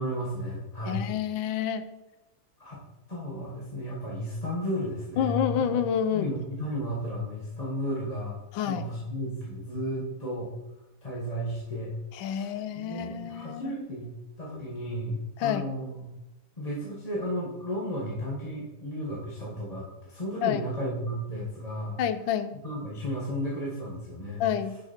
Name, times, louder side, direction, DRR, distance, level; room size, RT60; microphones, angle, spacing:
voice 1, 0.0-1.1 2.6-2.8 3.1-5.7 6.1-10.5 11.0-11.9 12.2-14.1 14.4-16.1 16.6-22.0 22.5-24.5, equal, 20° left, -5 dB, 1.7 m, -34 dB
voice 2, 0.9-1.8 5.2-6.3 8.5-8.9 12.2-13.8 15.4-15.6 20.4-20.6 22.0-22.6 24.4-24.8, left 9 dB, 70° left, 11 dB, 1.4 m, -28 dB
10.5 x 6.1 x 4.5 m, 0.96 s
omnidirectional pair, 2.4 m